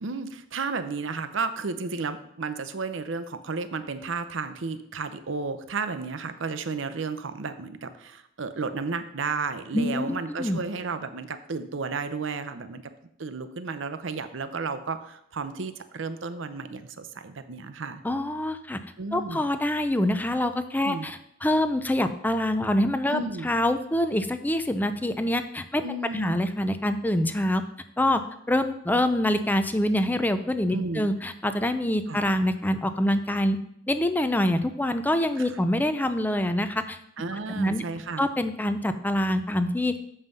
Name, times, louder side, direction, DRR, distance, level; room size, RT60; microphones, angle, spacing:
voice 1, 0.0-12.8 13.2-18.0 19.0-19.4 20.8-21.1 23.1-23.5 25.8-26.4 30.7-31.1 32.1-32.2 35.4-35.5 37.2-38.3, right 4 dB, 65° right, 10 dB, 0.7 m, -33 dB
voice 2, 9.7-10.6 18.0-18.8 19.1-27.6 28.0-28.2 28.5-33.6 33.9-37.0 37.5-37.8 38.2-40.0, left 1 dB, 10° left, 9 dB, 0.4 m, -25 dB
7.4 x 5.5 x 5.3 m, 0.74 s
head